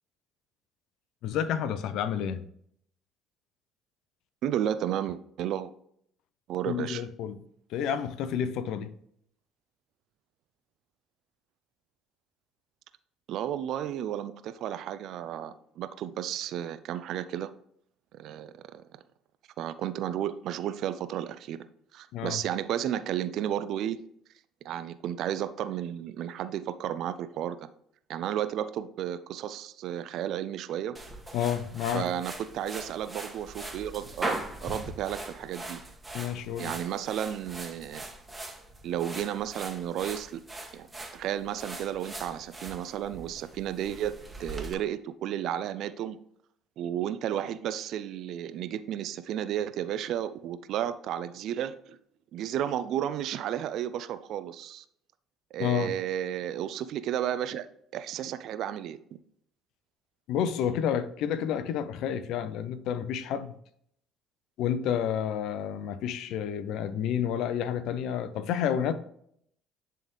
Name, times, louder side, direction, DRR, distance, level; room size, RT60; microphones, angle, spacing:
voice 1, 1.2-2.4 6.7-7.4 7.7-8.9 22.1-22.4 31.3-32.1 36.1-36.7 55.6-55.9 60.3-63.5 64.6-68.9, left 9 dB, 70° left, 0.6 m, -30 dB
voice 2, 4.4-5.7 6.5-7.0 13.3-17.5 18.1-18.8 19.6-21.6 21.9-24.0 24.6-27.6 28.1-31.0 31.9-35.8 36.6-38.0 38.8-40.4 40.7-40.9 41.1-44.1 44.4-46.2 46.8-52.0 52.3-54.8 55.5-57.7 57.9-59.0, right 10 dB, 65° right, 0.4 m, -33 dB
sound 1, 30.9-44.7, right 2 dB, 15° right, 1.4 m, -41 dB
10.5 x 3.5 x 3.1 m
hypercardioid pair, 60°, 0 cm